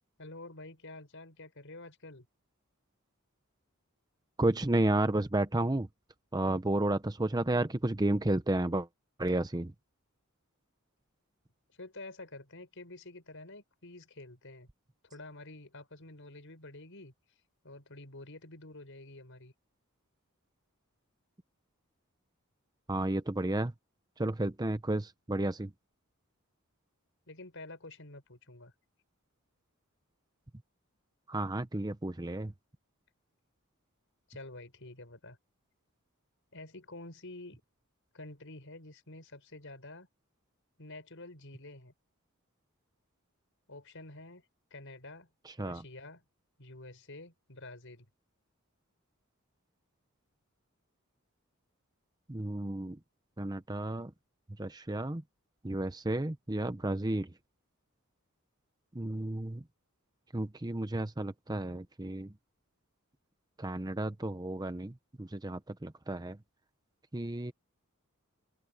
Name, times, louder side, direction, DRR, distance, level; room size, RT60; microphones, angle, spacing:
voice 1, 0.2-2.3 11.7-14.7 15.0-17.1 17.6-19.5 27.3-28.7 34.3-35.4 36.5-37.6 38.1-40.1 40.8-41.9 43.7-44.4 44.7-45.3 45.6-46.2 46.6-48.1, left 2 dB, 60° left, 6.6 m, -48 dB
voice 2, 4.4-5.9 6.3-8.9 9.2-9.7 22.9-23.7 24.2-25.7 31.3-32.5 45.4-45.8 52.3-53.0 53.4-54.1 54.6-55.2 55.6-57.3 58.9-59.6 60.3-62.4 63.6-66.4 67.1-67.5, right 1 dB, 20° right, 0.8 m, -32 dB
open air
head